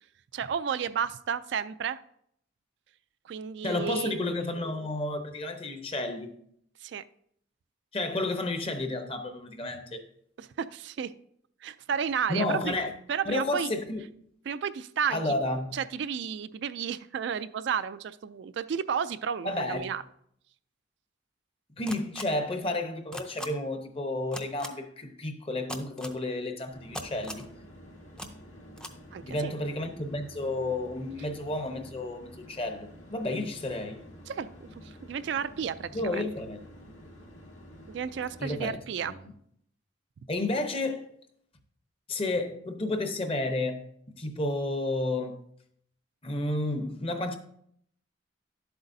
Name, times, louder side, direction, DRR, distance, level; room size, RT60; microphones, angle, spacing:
voice 1, 0.3-2.0 3.2-4.3 6.8-7.0 10.4-11.1 11.6-12.7 13.1-13.7 14.5-15.2 15.7-20.0 29.1-29.5 34.3-36.3 37.9-39.1, right 7 dB, 60° right, 0.3 m, -32 dB
voice 2, 3.6-6.3 7.9-10.0 12.3-12.9 13.3-14.0 15.1-15.7 19.4-19.9 21.8-27.5 29.2-34.0 35.9-36.7 38.4-38.8 39.0-39.3 40.3-41.1 42.1-45.4 46.2-47.4, left 2 dB, 30° left, 0.8 m, -31 dB
sound 1, 21.9-22.2 23.1-23.5 24.3-24.7 25.7-26.1 26.9-27.5 28.2-28.3 28.8-28.9, left 1 dB, 5° left, 0.5 m, -38 dB
sound 2, 26.7-38.7, equal, 90° left, 1.9 m, -50 dB
11.0 x 7.9 x 2.7 m
head